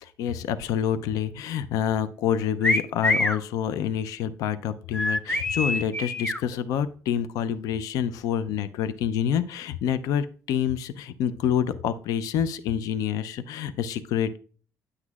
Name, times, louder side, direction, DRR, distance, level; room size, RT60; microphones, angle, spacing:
voice 1, 0.0-14.4, left 9 dB, 80° left, 13 dB, 0.5 m, -27 dB
sound 1, 2.6-3.4 4.9-6.4, left 2 dB, 20° left, 0.7 m, -25 dB
9.8 x 8.0 x 2.4 m, 0.43 s
cardioid pair, 110°, 6 cm